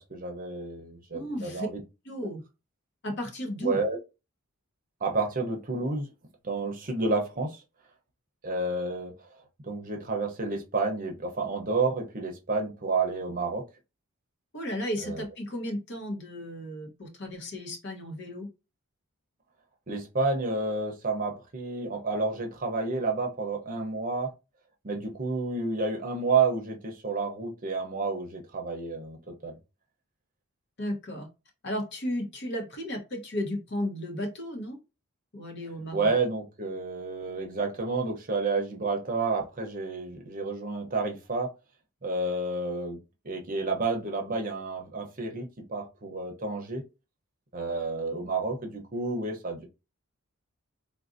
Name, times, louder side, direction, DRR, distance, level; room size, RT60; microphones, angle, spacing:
voice 1, 0.1-1.8 3.6-4.0 5.0-6.1 6.4-7.6 8.4-9.1 9.6-13.6 15.0-15.2 19.9-24.3 24.8-29.2 29.4-29.6 35.9-41.5 42.0-43.0 43.2-46.8 47.5-49.7, right 3 dB, 40° right, 0.7 m, -30 dB
voice 2, 1.1-1.7 2.0-2.4 3.0-3.8 14.5-18.5 30.8-31.3 31.6-34.8 35.3-36.1, equal, 50° left, 0.9 m, -34 dB
3.7 x 2.5 x 2.5 m
head